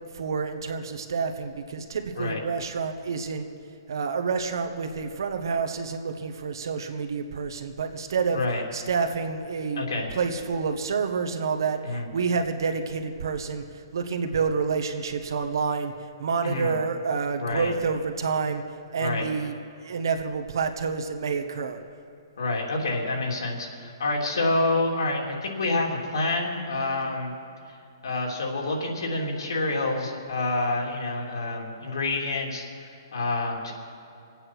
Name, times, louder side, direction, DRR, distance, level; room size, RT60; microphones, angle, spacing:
voice 1, 0.1-3.5 3.9-8.4 8.7-13.6 13.9-15.9 16.2-18.6 18.9-19.5 19.8-21.8, right 5 dB, 65° right, 6 dB, 1.3 m, -28 dB
voice 2, 9.7-10.1 11.8-12.1 16.4-16.7 17.4-17.7 19.0-19.2 22.4-27.3 28.0-33.7, left 2 dB, 80° left, -1 dB, 3.2 m, -28 dB
24.0 x 8.9 x 6.1 m, 2.6 s
hypercardioid pair, 175°, 2 cm